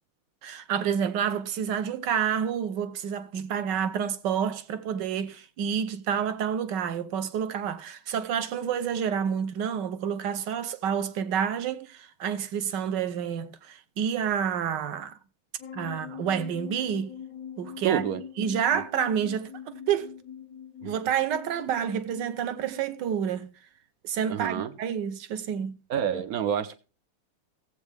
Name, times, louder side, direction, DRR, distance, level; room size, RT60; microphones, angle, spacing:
voice 1, 0.4-15.2 15.7-17.1 17.6-18.0 18.4-20.1 20.8-23.5 24.0-25.8, right 8 dB, 65° right, 1.3 m, -29 dB
sound 1, 15.6-23.0, left 8 dB, 65° left, 0.9 m, -43 dB
voice 2, 17.8-18.2 18.7-18.8 20.8-20.9 24.3-24.7 25.9-26.8, right 8 dB, 80° right, 0.8 m, -28 dB
16.0 x 8.0 x 3.3 m
omnidirectional pair, 2.4 m